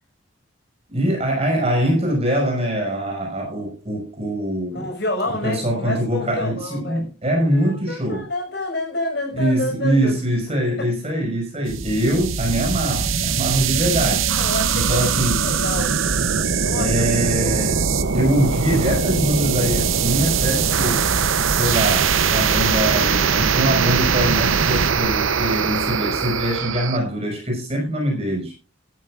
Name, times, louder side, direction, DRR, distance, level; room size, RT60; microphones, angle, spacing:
voice 1, 0.9-4.9 5.4-8.2 9.4-14.3 14.7-15.4 16.8-17.8 18.1-28.5, equal, 30° right, 5.4 m, -23 dB
voice 2, 4.7-7.0 7.5-10.2 10.8-10.9 14.3-15.1 15.4-15.9 16.5-16.9 17.4-17.6, left 1 dB, 50° left, 5.4 m, -28 dB
sound 1, 11.7-27.0, right 6 dB, 70° right, 0.8 m, -21 dB
15.5 x 12.5 x 2.5 m
head